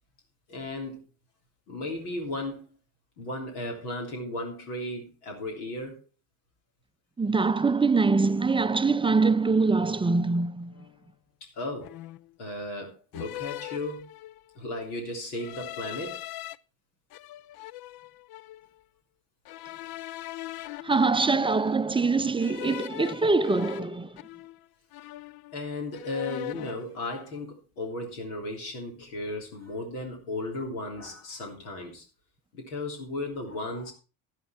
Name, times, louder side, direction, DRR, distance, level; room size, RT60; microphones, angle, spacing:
voice 1, 0.5-1.0 1.7-2.6 3.2-6.0 11.4-11.9 12.4-14.0 14.5-16.2 25.5-32.0 32.5-33.9, left 2 dB, 85° left, 3.3 m, -35 dB
voice 2, 7.2-10.9 20.8-24.2, right 4 dB, 10° right, 0.5 m, -24 dB
sound 1, 10.7-11.0 11.8-12.4 13.1-14.5 15.3-16.6 17.1-18.7 19.5-21.8 22.4-24.7 24.9-25.6 25.9-26.9, left 16 dB, 60° left, 0.6 m, -41 dB
11.5 x 11.0 x 4.3 m
hypercardioid pair, 55°, 43 cm